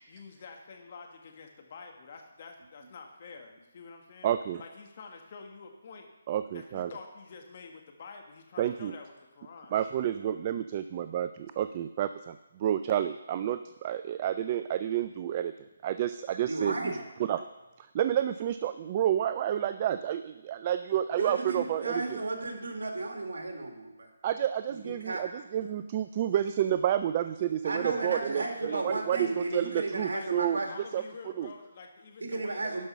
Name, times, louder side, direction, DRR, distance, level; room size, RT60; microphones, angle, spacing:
voice 1, 0.1-4.3 4.6-6.1 6.5-9.7 28.3-28.9 29.1-29.5 30.1-30.3 30.7-32.8, left 4 dB, 45° left, 3 dB, 1.6 m, -48 dB
voice 2, 4.2-4.6 6.3-6.9 8.6-8.9 9.7-15.5 15.8-16.9 17.3-17.4 17.8-22.0 24.2-30.6 30.9-31.0 31.4-31.5, right 11 dB, 30° right, 11 dB, 0.3 m, -30 dB
voice 3, 16.5-17.0 21.2-24.1 24.7-25.2 27.6-30.7 32.2-32.8, right 2 dB, 70° right, 3 dB, 2.0 m, -34 dB
11.5 x 5.3 x 5.5 m, 1.0 s
figure-of-eight pair, 150°, 0 cm